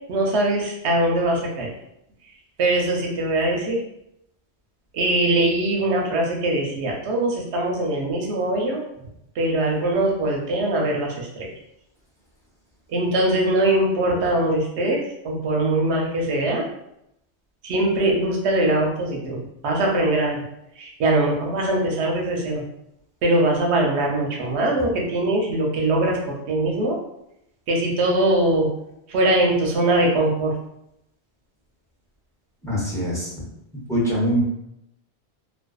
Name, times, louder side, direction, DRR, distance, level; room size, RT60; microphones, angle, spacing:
voice 1, 0.1-1.7 2.6-3.8 4.9-8.8 9.4-11.5 12.9-16.6 17.6-19.4 19.6-20.4 20.8-22.6 23.2-26.2 26.5-27.0 27.7-28.7 29.1-30.5, right 1 dB, 90° right, 0 dB, 0.9 m, -22 dB
voice 2, 32.6-33.3 33.9-34.4, equal, 5° left, -7 dB, 0.6 m, -23 dB
2.5 x 2.2 x 2.3 m, 0.81 s
omnidirectional pair, 1.1 m